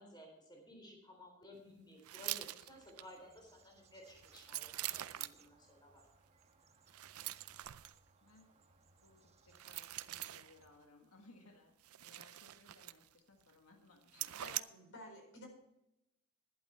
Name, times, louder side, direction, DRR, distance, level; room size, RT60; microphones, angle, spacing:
voice 1, 0.0-6.0, left 1 dB, 20° left, 2 dB, 3.6 m, -56 dB
sound 1, 2.0-3.0 4.1-5.5 6.9-8.0 9.5-10.6 11.8-13.2 13.5-13.6 14.1-14.6, right 15 dB, 70° right, 0.5 m, -44 dB
sound 2, 2.6-10.8, right 3 dB, 30° right, 1.3 m, -68 dB
voice 2, 8.2-8.5 9.0-14.3, left 2 dB, 85° left, 2 dB, 1.7 m, -63 dB
voice 3, 14.4-15.5, left 1 dB, 60° left, 2 dB, 4.5 m, -53 dB
11.5 x 11.5 x 4.4 m, 0.87 s
head